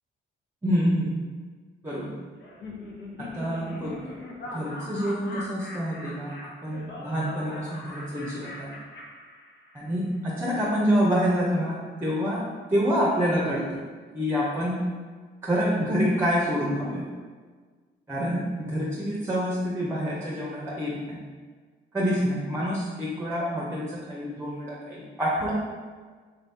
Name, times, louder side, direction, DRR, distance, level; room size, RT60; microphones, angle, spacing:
voice 1, 0.6-1.1 1.8-2.1 3.3-4.0 4.5-8.8 9.7-12.4 12.7-13.8 14.1-14.8 15.4-17.0 18.1-21.2 21.9-25.5, equal, 15° right, -4 dB, 0.7 m, -27 dB
Laughter, 2.4-9.9, left 2 dB, 65° left, 0.7 m, -41 dB
3.8 x 2.7 x 3.5 m, 1.5 s
cardioid pair, 90°, 20 cm